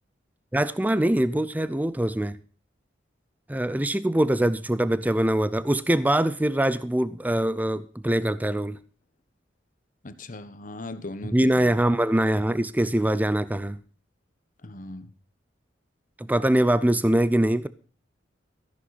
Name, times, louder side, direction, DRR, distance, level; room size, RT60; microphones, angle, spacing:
voice 1, 0.5-2.4 3.5-8.8 11.3-13.8 16.2-17.7, right 1 dB, 10° right, 0.5 m, -23 dB
voice 2, 10.0-11.7 14.6-15.1, left 2 dB, 45° left, 1.1 m, -38 dB
14.0 x 11.0 x 4.2 m
head